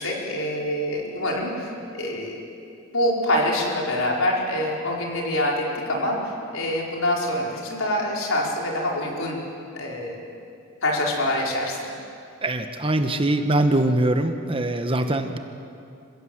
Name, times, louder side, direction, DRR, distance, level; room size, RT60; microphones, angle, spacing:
voice 1, 0.0-2.4 2.9-9.4 9.7-10.2 10.8-11.8, left 1 dB, 70° left, -2 dB, 4.7 m, -25 dB
voice 2, 12.4-15.4, right 1 dB, 25° right, 7 dB, 1.1 m, -22 dB
27.0 x 16.0 x 7.9 m, 2.6 s
head